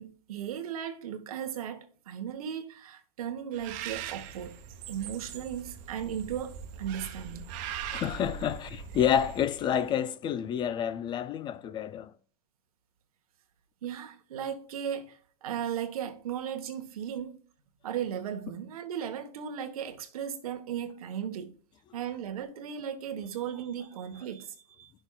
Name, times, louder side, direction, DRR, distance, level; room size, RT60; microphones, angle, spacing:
voice 1, 0.0-4.6 4.9-7.5 13.8-17.4 17.8-21.5 21.9-24.9, right 9 dB, 85° right, 1.4 m, -36 dB
Bird, 3.5-9.9, right 8 dB, 45° right, 1.1 m, -41 dB
voice 2, 7.9-12.1, left 9 dB, 25° left, 0.4 m, -29 dB
12.0 x 6.2 x 2.4 m
supercardioid pair, 135°, 18 cm